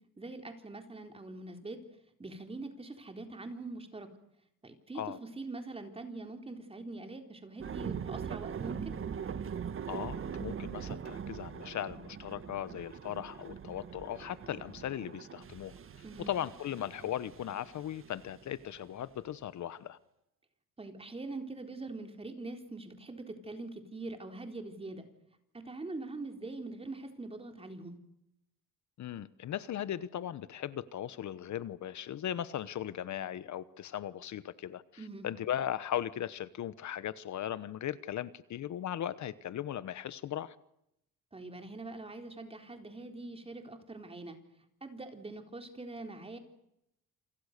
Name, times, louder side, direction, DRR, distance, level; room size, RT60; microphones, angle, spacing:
voice 1, 0.2-1.8 2.2-4.1 4.6-8.9 16.0-16.3 20.8-25.0 25.5-28.0 35.0-35.3 41.3-44.4 44.8-46.4, right 2 dB, 15° right, 3.9 m, -43 dB
sound 1, 7.6-19.1, right 7 dB, 40° right, 1.6 m, -42 dB
voice 2, 9.9-15.7 16.3-20.0 29.0-34.8 35.2-40.5, left 11 dB, 55° left, 1.1 m, -38 dB
28.5 x 27.0 x 6.7 m
cardioid pair, 145°, 34 cm